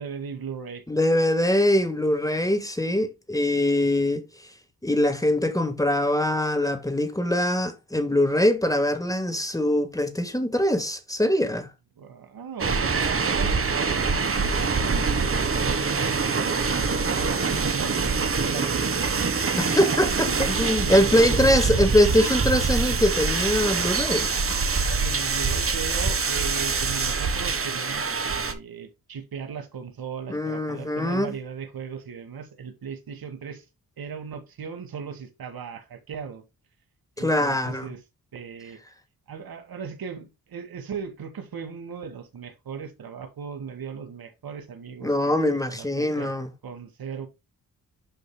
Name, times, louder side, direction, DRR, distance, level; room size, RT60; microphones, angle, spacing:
voice 1, 0.0-0.8 12.0-16.8 17.1-19.1 20.1-20.4 20.8-21.2 25.0-33.6 34.0-36.4 37.2-38.0 38.3-38.8 39.3-45.4 45.7-46.3 46.6-47.3, right 6 dB, 70° right, 2.1 m, -37 dB
voice 2, 0.9-4.2 4.8-11.7 19.6-24.3 30.3-31.3 37.2-37.9 45.0-46.5, left 1 dB, 10° left, 1.5 m, -23 dB
sound 1, 12.6-28.5, right 4 dB, 35° right, 1.4 m, -25 dB
11.5 x 5.4 x 2.2 m
cardioid pair, 100°, 37 cm